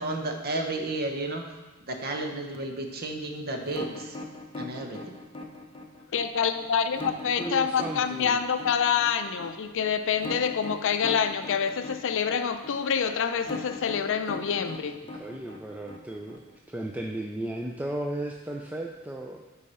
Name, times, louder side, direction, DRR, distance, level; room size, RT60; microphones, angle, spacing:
voice 1, 0.0-1.4 1.8-4.2 4.6-5.2, right 2 dB, 45° right, 3 dB, 1.0 m, -32 dB
sound 1, 3.6-16.6, left 2 dB, 25° left, 0.8 m, -39 dB
voice 2, 6.1-15.0, left 7 dB, 60° left, 9 dB, 0.5 m, -27 dB
voice 3, 7.4-8.4 15.1-16.4 16.7-19.5, right 1 dB, 5° right, 0 dB, 0.4 m, -35 dB
8.4 x 4.7 x 5.4 m, 1.2 s
head